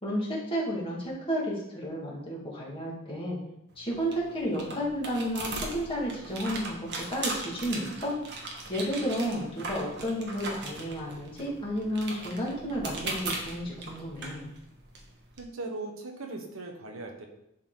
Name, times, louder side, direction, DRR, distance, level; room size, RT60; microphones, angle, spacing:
voice 1, 0.0-3.4 3.8-8.2 8.7-14.5, equal, 25° left, -5 dB, 2.2 m, -32 dB
sound 1, 3.7-15.4, right 2 dB, 55° right, 1.4 m, -39 dB
voice 2, 15.4-17.3, right 2 dB, 70° right, 2 dB, 1.2 m, -39 dB
10.5 x 4.3 x 4.0 m, 0.83 s
head